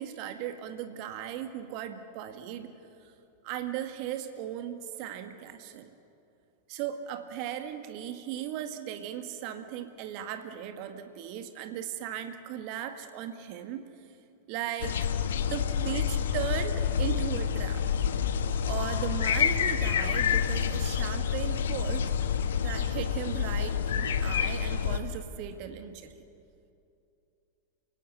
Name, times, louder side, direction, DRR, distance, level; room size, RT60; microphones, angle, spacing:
voice 1, 0.0-2.7 3.4-5.9 6.7-13.8 14.5-15.0 15.5-17.8 18.6-22.1 22.6-26.2, right 10 dB, 45° right, 8 dB, 1.8 m, -37 dB
sound 1, 14.8-25.0, left 8 dB, 60° left, 1.1 m, -28 dB
29.0 x 17.5 x 8.1 m, 2.7 s
figure-of-eight pair, 90°, 0 cm